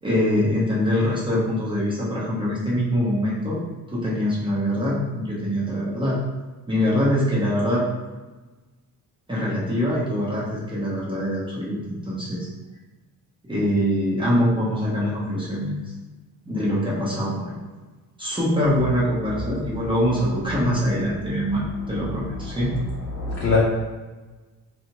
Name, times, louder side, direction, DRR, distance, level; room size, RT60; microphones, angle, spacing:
voice 1, 0.0-3.6 3.9-6.2 6.7-7.8 9.3-11.8 12.0-12.5 13.4-15.8 16.4-17.6 18.2-22.7, equal, 15° right, -7 dB, 0.7 m, -23 dB
voice 2, 23.1-23.6, left 4 dB, 45° left, -5 dB, 0.6 m, -25 dB
2.8 x 2.4 x 2.8 m, 1.2 s
cardioid pair, 150°, 35 cm